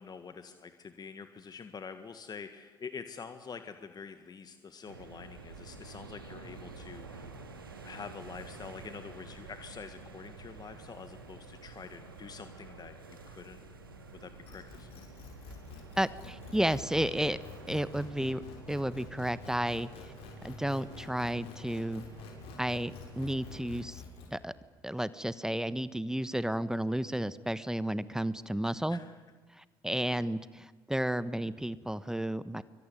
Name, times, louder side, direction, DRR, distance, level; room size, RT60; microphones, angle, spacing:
voice 1, 0.0-7.3 7.8-13.6 14.1-15.1 28.9-29.2 30.0-30.3, left 5 dB, 35° left, 9 dB, 1.8 m, -46 dB
sound 1, 4.9-23.9, right 3 dB, 90° right, 2.0 m, -50 dB
sound 2, 14.5-24.3, left 6 dB, 60° left, 6.9 m, -48 dB
voice 2, 16.0-17.4 17.7-18.4 18.7-19.9 20.4-22.0 22.6-22.9 23.2-24.0 24.3-24.5 24.8-29.0 29.6-32.6, right 1 dB, 5° right, 16 dB, 1.1 m, -32 dB
25.5 x 24.0 x 9.6 m, 1.4 s
figure-of-eight pair, 50°, 11 cm